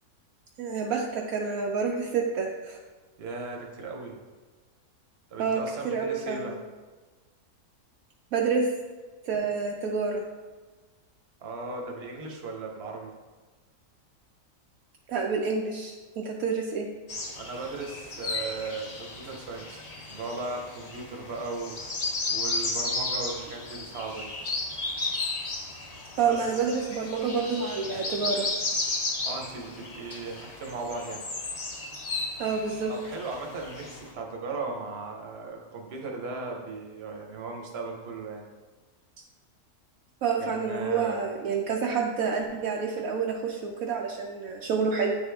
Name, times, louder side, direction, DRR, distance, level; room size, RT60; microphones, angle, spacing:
voice 1, 0.6-2.8 5.4-6.5 8.3-8.7 9.2-10.3 15.1-16.9 26.2-28.5 32.4-32.9 40.2-45.2, right 5 dB, 70° right, 0 dB, 1.0 m, -28 dB
voice 2, 3.2-4.2 5.3-6.6 11.4-13.1 17.3-21.9 22.3-24.3 26.2-26.6 27.8-28.0 29.2-31.2 32.9-38.4 40.4-41.2, right 3 dB, 50° right, 1 dB, 1.0 m, -37 dB
sound 1, 17.1-34.1, left 3 dB, 40° left, 0.5 m, -34 dB
8.8 x 3.6 x 3.4 m, 1.3 s
omnidirectional pair, 1.6 m